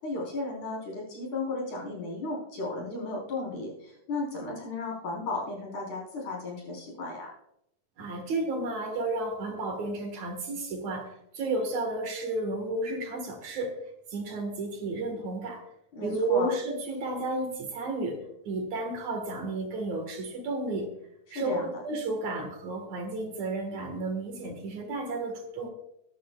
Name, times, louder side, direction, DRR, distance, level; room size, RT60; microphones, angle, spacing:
voice 1, 0.0-7.3 16.0-16.5 21.3-21.7, left 2 dB, 60° left, -3 dB, 5.4 m, -34 dB
voice 2, 8.0-13.8 14.1-15.6 16.0-20.9 21.3-25.7, right 2 dB, 65° right, 4 dB, 2.8 m, -32 dB
21.5 x 10.5 x 2.3 m, 0.80 s
omnidirectional pair, 3.7 m